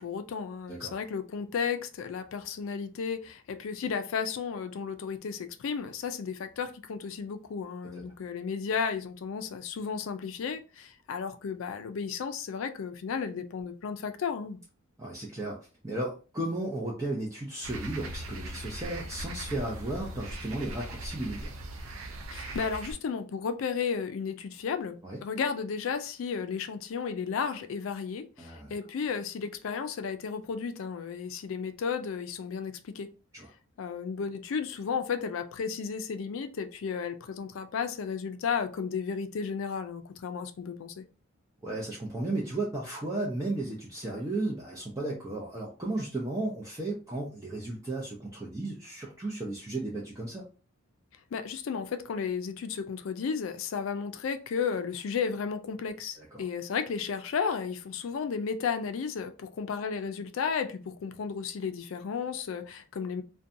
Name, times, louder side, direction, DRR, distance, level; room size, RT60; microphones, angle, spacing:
voice 1, 0.0-14.6 22.3-33.1 33.8-41.1 51.3-63.2, left 6 dB, 70° left, 0.4 m, -33 dB
voice 2, 15.0-15.6 15.8-21.5 25.0-25.2 28.4-28.7 33.3-33.5 41.6-50.5 56.2-56.5, right 2 dB, 15° right, 0.5 m, -34 dB
sound 1, 17.6-22.9, right 1 dB, 80° right, 0.4 m, -39 dB
2.6 x 2.2 x 2.5 m
head